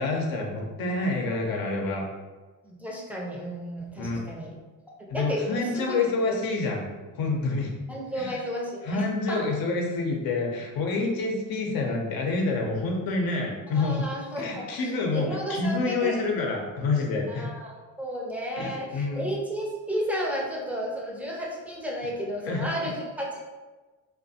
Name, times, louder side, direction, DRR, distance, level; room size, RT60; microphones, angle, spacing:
voice 1, 0.0-2.0 4.0-4.2 5.1-6.8 7.2-7.8 8.2-8.4 8.8-14.0 14.4-17.5 18.6-19.2 22.5-22.7, left 3 dB, 55° left, 0 dB, 0.7 m, -27 dB
voice 2, 2.6-4.5 5.1-6.0 6.3-6.4 7.9-9.4 13.7-16.2 17.3-23.4, equal, 5° right, -3 dB, 0.6 m, -33 dB
2.3 x 2.2 x 2.7 m, 1.3 s
hypercardioid pair, 65°, 43 cm